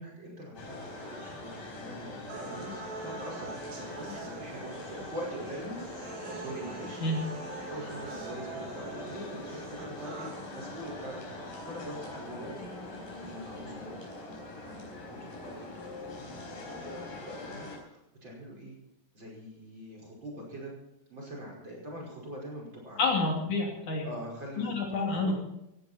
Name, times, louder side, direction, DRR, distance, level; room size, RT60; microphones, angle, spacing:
voice 1, 0.0-7.2 7.5-14.0 14.5-16.0 16.3-18.8 19.1-20.7 21.1-23.2 24.0-25.3, equal, 30° right, -2 dB, 5.9 m, -43 dB
sound 1, 0.6-17.8, left 2 dB, 85° left, 6.2 m, -43 dB
sound 2, 2.3-10.3, right 4 dB, 75° right, 4.5 m, -44 dB
voice 2, 23.0-24.1 24.6-25.3, left 3 dB, 60° left, 0 dB, 4.4 m, -28 dB
17.0 x 16.5 x 4.4 m, 0.87 s
omnidirectional pair, 4.0 m